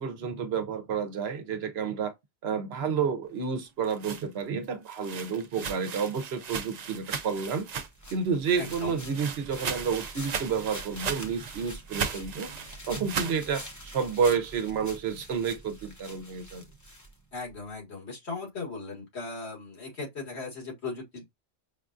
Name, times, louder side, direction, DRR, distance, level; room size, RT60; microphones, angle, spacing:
voice 1, 0.0-2.1 2.4-7.7 8.1-12.5 12.9-16.6, right 6 dB, 70° right, 1.0 m, -30 dB
sound 1, 3.6-8.1 8.4-13.4, right 6 dB, 50° right, 0.6 m, -37 dB
sound 2, 7.5-17.5, equal, 20° left, 0.8 m, -46 dB
voice 2, 8.6-8.9 17.3-21.2, left 3 dB, 75° left, 2.0 m, -38 dB
5.1 x 2.3 x 2.4 m
omnidirectional pair, 1.1 m